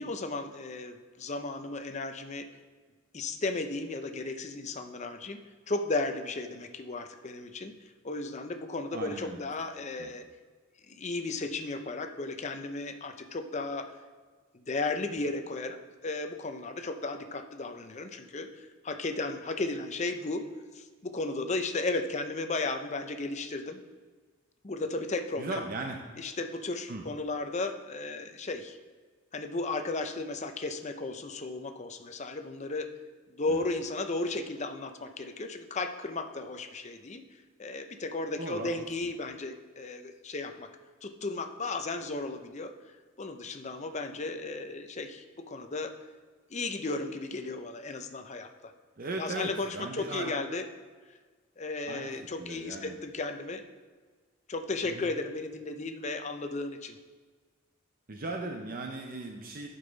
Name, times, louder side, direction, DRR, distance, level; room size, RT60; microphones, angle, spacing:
voice 1, 0.0-2.4 3.1-5.4 5.7-7.7 8.0-10.2 10.8-14.0 14.5-20.4 20.7-23.8 24.6-25.6 26.2-28.8 29.3-32.9 33.3-37.2 37.6-40.7 41.0-42.7 43.2-46.0 46.5-48.5 49.2-50.7 51.6-53.6 54.5-57.0, left 3 dB, 35° left, 6 dB, 0.6 m, -35 dB
voice 2, 8.9-9.4 10.0-10.1 25.4-26.0 26.9-27.0 33.5-33.6 38.4-38.7 49.0-50.3 51.8-53.0 54.8-55.1 58.1-59.7, right 2 dB, 45° right, 3 dB, 0.6 m, -37 dB
11.0 x 5.5 x 4.0 m, 1.5 s
head